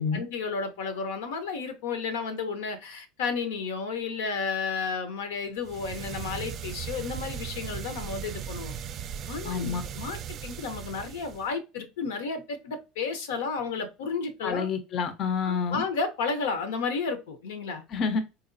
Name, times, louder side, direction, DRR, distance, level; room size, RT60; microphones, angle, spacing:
voice 1, 0.0-8.7 9.3-14.7 15.4-17.8, left 5 dB, 85° left, 0.7 m, -32 dB
sound 1, 5.6-11.5, right 8 dB, 45° right, 0.4 m, -38 dB
voice 2, 9.4-9.8 14.4-15.8 17.9-18.2, left 5 dB, 50° left, 0.5 m, -28 dB
4.0 x 2.2 x 2.6 m
supercardioid pair, 100°, 0 cm